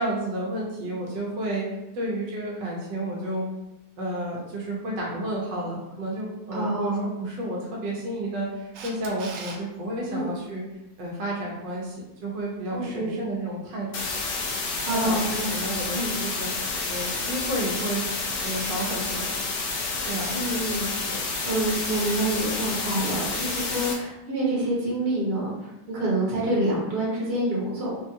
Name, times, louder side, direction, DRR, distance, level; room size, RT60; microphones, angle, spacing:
voice 1, 0.0-1.6 1.9-3.5 4.0-10.6 11.0-12.0 12.2-13.9 14.9-16.5 16.9-19.3 20.0-20.4, right 1 dB, 90° right, -3 dB, 1.4 m, -31 dB
voice 2, 6.5-7.1 10.1-10.3 12.7-13.2 14.8-15.5 15.9-16.2 20.3-28.0, right 1 dB, 45° right, -6 dB, 1.0 m, -27 dB
Camera, 8.7-9.6 16.3-16.4, right 4 dB, 70° right, 1.0 m, -38 dB
sound 1, 13.9-23.9, left 3 dB, 80° left, 1.2 m, -29 dB
4.0 x 2.3 x 2.7 m, 0.93 s
omnidirectional pair, 1.9 m